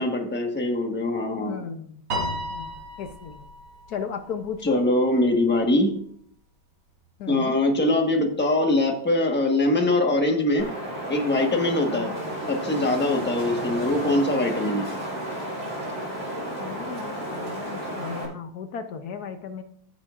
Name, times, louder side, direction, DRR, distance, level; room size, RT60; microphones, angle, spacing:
voice 1, 0.0-1.7 4.6-5.9 7.3-10.7 11.1-12.1 12.5-14.9, left 2 dB, 5° left, 2 dB, 0.9 m, -22 dB
voice 2, 1.4-2.7 3.0-3.5 3.9-4.8 7.2-7.6 11.9-12.2 14.0-14.2 16.6-19.6, left 6 dB, 65° left, 8 dB, 1.0 m, -35 dB
Piano, 2.1-4.6, equal, 80° right, 3.9 m, -33 dB
Wind, 10.6-18.2, right 1 dB, 30° right, 4.2 m, -32 dB
15.5 x 7.3 x 2.5 m, 0.63 s
omnidirectional pair, 2.2 m